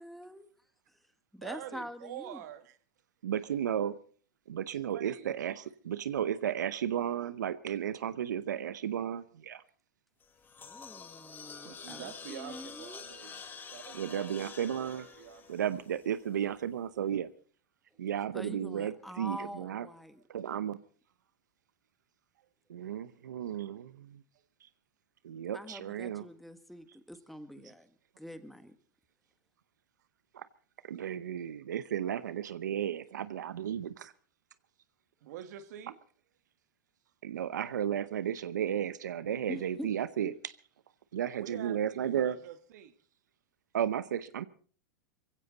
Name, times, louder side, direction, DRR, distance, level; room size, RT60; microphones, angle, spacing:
voice 1, 0.0-0.4 1.4-2.4 10.6-13.0 18.3-20.2 25.5-27.9 28.2-28.8 39.5-39.9 40.2-40.3, equal, ahead, 1.5 m, -45 dB
voice 2, 1.4-2.8 4.9-5.4 11.6-13.4 13.7-14.4 14.6-14.8 15.1-15.4 15.7-15.8 35.2-36.0 41.4-42.9, right 10 dB, 70° right, 1.7 m, -46 dB
voice 3, 3.2-3.9 4.5-9.6 13.9-15.1 15.5-17.3 18.0-19.9 20.3-20.8 22.7-24.2 25.2-26.2 30.3-30.5 30.8-34.1 37.2-40.3 41.1-42.4 43.7-44.4, right 9 dB, 90° right, 0.8 m, -34 dB
sound 1, 10.2-16.5, left 6 dB, 20° left, 1.9 m, -48 dB
21.5 x 16.0 x 4.0 m
hypercardioid pair, 115°, 9 cm